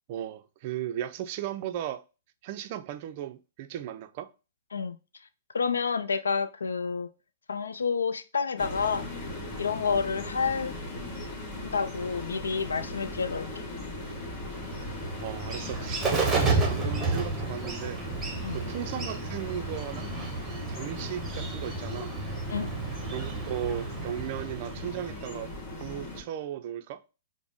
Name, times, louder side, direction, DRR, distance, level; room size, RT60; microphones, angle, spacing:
voice 1, 0.1-2.0 2.4-4.3 15.2-18.0 18.5-20.1 20.7-22.1 23.0-25.5 25.8-27.0, right 11 dB, 45° right, 0.4 m, -36 dB
voice 2, 5.5-7.1 7.5-9.1 9.6-10.7 11.6-13.6 18.4-18.6 22.5-22.7, left 5 dB, 85° left, 0.4 m, -29 dB
sound 1, 8.6-26.2, left 2 dB, 40° left, 1.4 m, -39 dB
Bird, 13.9-25.4, right 3 dB, 15° right, 1.0 m, -32 dB
5.0 x 2.0 x 3.5 m
hypercardioid pair, 125°, 0 cm